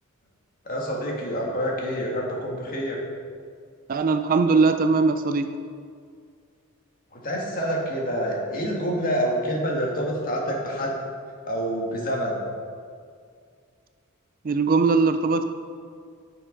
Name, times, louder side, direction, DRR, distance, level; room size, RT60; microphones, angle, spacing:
voice 1, 0.6-3.0 7.1-11.0 11.5-12.4, equal, 40° left, -2 dB, 1.7 m, -27 dB
voice 2, 3.9-5.5 14.4-15.4, right 4 dB, 40° right, 8 dB, 0.4 m, -20 dB
10.5 x 6.6 x 3.9 m, 2.1 s
head